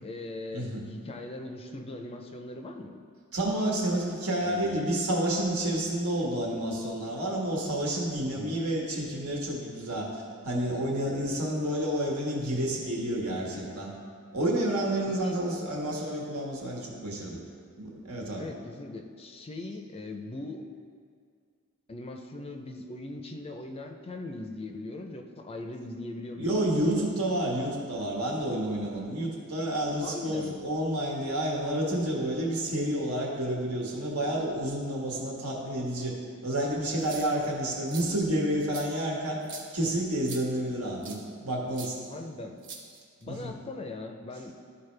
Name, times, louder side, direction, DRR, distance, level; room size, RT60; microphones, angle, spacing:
voice 1, 0.0-3.0 4.4-4.8 8.4-8.6 15.1-15.4 18.4-20.6 21.9-27.0 30.0-30.6 37.4-37.5 42.1-42.6 43.2-44.5, left 2 dB, 25° left, 4 dB, 0.5 m, -40 dB
voice 2, 0.5-0.9 3.3-10.1 10.4-13.9 14.3-17.4 17.8-18.5 26.4-36.2 36.4-39.4 39.7-42.0 43.2-43.6, right 1 dB, 80° right, -2 dB, 1.4 m, -30 dB
sound 1, 36.9-37.5 37.9-38.0 38.7-38.9 39.4-39.7 40.3-40.4 41.0-41.2 41.7-41.9 42.6-43.2, right 5 dB, 60° right, 0.9 m, -42 dB
12.5 x 4.2 x 3.3 m, 2.1 s
head